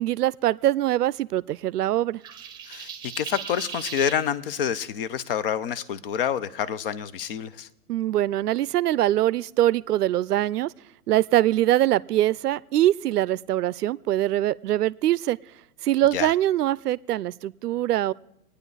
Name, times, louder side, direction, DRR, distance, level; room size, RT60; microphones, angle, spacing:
voice 1, 0.0-2.2 7.9-10.7 11.1-15.4 15.8-18.1, right 13 dB, 80° right, 0.6 m, -23 dB
sound 1, 2.2-4.2, right 8 dB, 10° right, 0.9 m, -38 dB
voice 2, 2.7-7.7 16.1-16.3, left 8 dB, 40° left, 0.6 m, -28 dB
25.5 x 9.7 x 3.9 m
hypercardioid pair, 140°, 46 cm